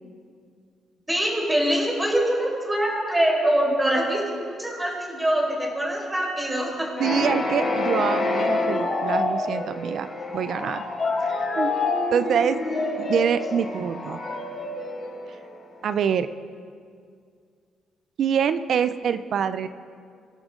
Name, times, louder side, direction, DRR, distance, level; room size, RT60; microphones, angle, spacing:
voice 1, 1.1-4.3 4.6-6.9, right 1 dB, 15° right, -2 dB, 5.0 m, -24 dB
sound 1, 7.0-15.7, left 3 dB, 40° left, 4.1 m, -27 dB
voice 2, 7.0-10.8 11.2-11.7 12.1-12.6 13.0-14.2 15.8-16.3 18.2-19.7, right 8 dB, 65° right, 12 dB, 0.6 m, -25 dB
24.5 x 11.5 x 3.8 m, 2.2 s
cardioid pair, 90°, 0 cm